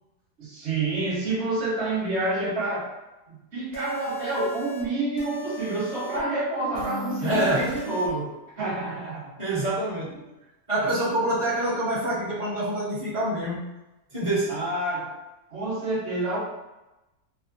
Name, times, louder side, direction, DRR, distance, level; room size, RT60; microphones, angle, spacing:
voice 1, 0.4-2.9 3.3-9.3 14.5-15.1 15.5-16.4, right 2 dB, 45° right, -6 dB, 1.2 m, -28 dB
sound 1, 3.7-4.8 5.2-6.2 6.7-8.1, right 3 dB, 65° left, 0.4 m, -36 dB
voice 2, 7.2-7.7 9.4-10.3 10.7-13.7 14.1-14.6, right 1 dB, 25° right, -9 dB, 0.8 m, -26 dB
3.1 x 2.1 x 2.6 m, 0.98 s
omnidirectional pair, 1.7 m